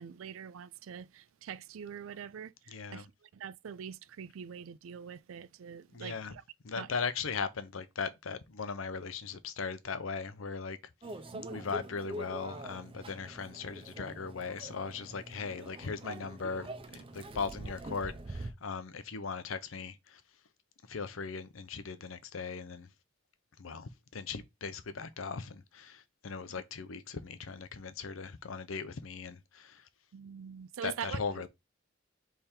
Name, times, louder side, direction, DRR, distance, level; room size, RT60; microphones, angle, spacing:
voice 1, 0.0-6.4 6.8-6.9 11.3-11.6 30.1-31.2, right 7 dB, 85° right, 0.4 m, -44 dB
voice 2, 2.7-3.1 5.9-6.3 6.6-10.8 11.5-20.2 20.9-22.9 23.6-29.9 30.8-31.5, left 5 dB, 85° left, 0.7 m, -38 dB
Microwave oven, 11.0-18.5, right 1 dB, 25° right, 0.6 m, -44 dB
3.5 x 3.5 x 4.3 m
head